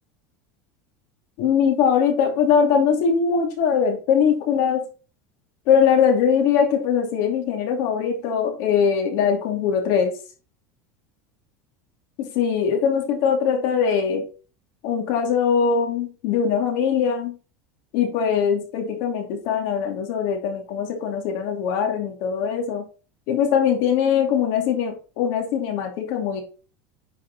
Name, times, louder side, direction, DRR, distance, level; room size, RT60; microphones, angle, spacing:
voice 1, 1.4-4.8 5.7-10.1 12.2-14.2 14.8-17.4 17.9-22.8 23.3-26.4, left 7 dB, 60° left, 2 dB, 2.6 m, -21 dB
10.5 x 5.0 x 4.2 m, 0.36 s
supercardioid pair, 150°, 8 cm